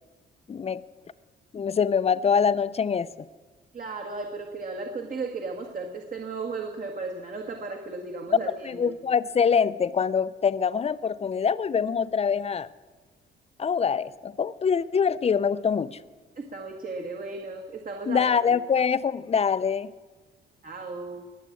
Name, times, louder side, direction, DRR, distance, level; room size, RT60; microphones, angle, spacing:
voice 1, 0.5-0.8 1.5-3.1 8.6-12.7 13.6-15.9 18.1-19.9, left 6 dB, 30° left, 15 dB, 0.6 m, -24 dB
voice 2, 3.7-8.9 16.4-18.6 20.6-21.2, right 3 dB, 45° right, 2 dB, 1.8 m, -35 dB
20.5 x 7.5 x 8.6 m, 1.3 s
cardioid pair, 90°, 20 cm